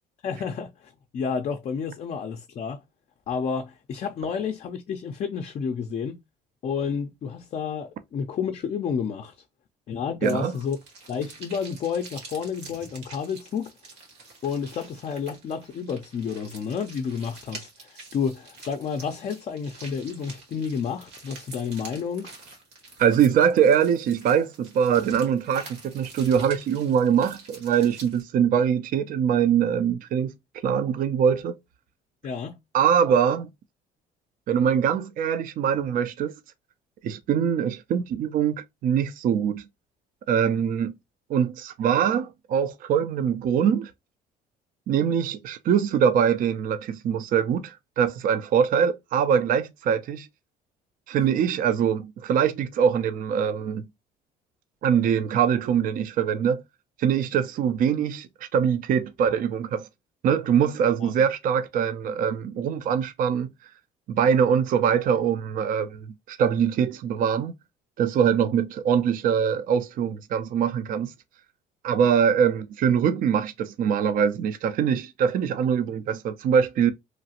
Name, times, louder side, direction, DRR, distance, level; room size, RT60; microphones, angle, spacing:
voice 1, 0.2-2.8 3.3-6.2 6.6-9.4 9.9-10.8 11.1-13.7 14.4-22.3 32.2-32.6 61.0-61.1, left 6 dB, 45° left, 0.4 m, -30 dB
voice 2, 10.2-10.5 23.0-30.3 30.6-31.6 32.7-33.5 34.5-36.3 37.0-39.6 40.3-40.9 41.3-43.9 44.9-50.3 51.1-53.9 54.8-56.6 57.0-59.9 60.2-63.5 64.1-67.5 68.0-71.1 71.8-76.9, right 8 dB, 55° right, 0.4 m, -23 dB
sound 1, 10.2-28.2, right 3 dB, 85° right, 1.6 m, -46 dB
3.0 x 2.4 x 2.8 m
cardioid pair, 110°, 17 cm